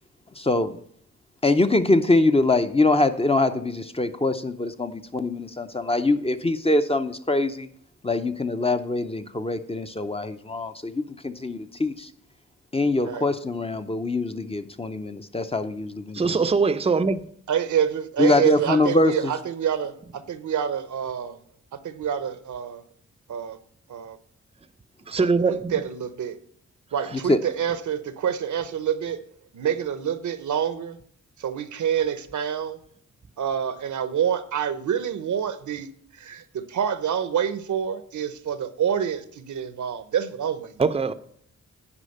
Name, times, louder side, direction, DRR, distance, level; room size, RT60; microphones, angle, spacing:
voice 1, 0.4-0.8 1.4-7.7 8.0-12.1 12.7-16.4 18.2-19.3 27.3-27.4, left 2 dB, 20° left, 0.6 m, -23 dB
voice 2, 16.1-17.2 25.1-25.7 40.8-41.1, right 4 dB, 20° right, 0.5 m, -22 dB
voice 3, 17.5-21.4 21.8-22.8 23.3-23.6 23.9-24.2 25.2-26.4 26.9-29.2 29.5-31.0 31.4-32.8 33.4-35.9 36.1-40.8, right 8 dB, 75° right, 0.8 m, -27 dB
9.9 x 4.9 x 6.6 m
cardioid pair, 80°, 30 cm